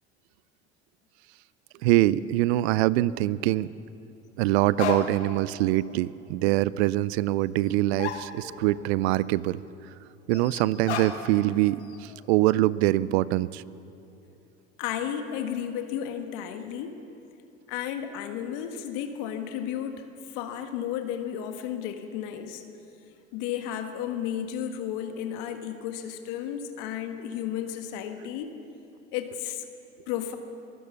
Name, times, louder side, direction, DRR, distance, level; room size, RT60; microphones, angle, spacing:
voice 1, 1.8-3.7 4.4-9.6 10.3-13.6, right 16 dB, 70° right, 20 dB, 0.6 m, -24 dB
sound 1, 4.4-4.5 4.8-5.5 5.8-5.9 7.6-7.7 8.0-8.8 9.1-9.2 10.3-11.5 11.8-12.3, left 8 dB, 85° left, 1.5 m, -35 dB
voice 2, 14.8-16.9 17.7-22.6 23.3-28.5 29.1-29.6 30.1-30.4, left 9 dB, 65° left, 7 dB, 1.6 m, -33 dB
22.5 x 17.0 x 7.0 m, 2.9 s
hypercardioid pair, 65°, 33 cm